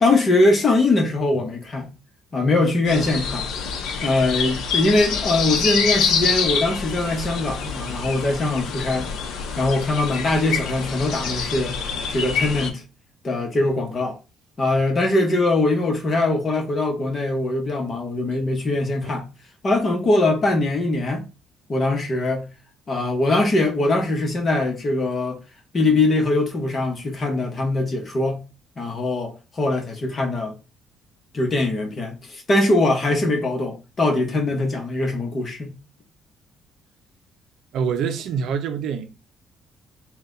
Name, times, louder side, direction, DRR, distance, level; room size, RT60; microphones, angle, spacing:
voice 1, 0.0-1.9 2.3-3.5 4.0-9.1 9.6-11.8 12.1-12.8 13.2-14.2 14.6-19.3 19.6-21.2 21.7-22.4 22.9-25.4 25.7-28.4 28.8-30.5 31.3-35.7, left 2 dB, 30° left, 0.9 m, -22 dB
sound 1, 2.9-12.7, left 6 dB, 70° left, 0.7 m, -26 dB
voice 2, 37.7-39.1, right 6 dB, 65° right, 0.5 m, -26 dB
4.0 x 2.3 x 3.8 m
cardioid pair, 160°, 0 cm